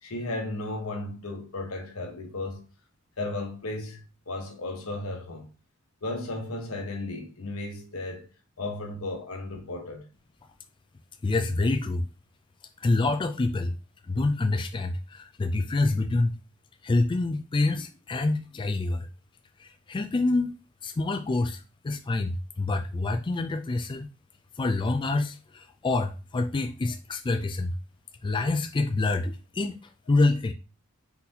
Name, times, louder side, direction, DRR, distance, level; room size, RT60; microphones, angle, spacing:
voice 1, 0.0-2.7 3.2-5.5 6.0-8.3 8.6-10.1, left 2 dB, 85° left, 1.1 m, -35 dB
voice 2, 11.2-12.1 12.8-13.7 14.1-16.3 16.8-19.1 19.6-20.6 20.8-24.1 24.6-27.7 28.2-29.8 30.1-30.5, left 2 dB, 25° left, 0.3 m, -26 dB
4.1 x 3.9 x 2.8 m
head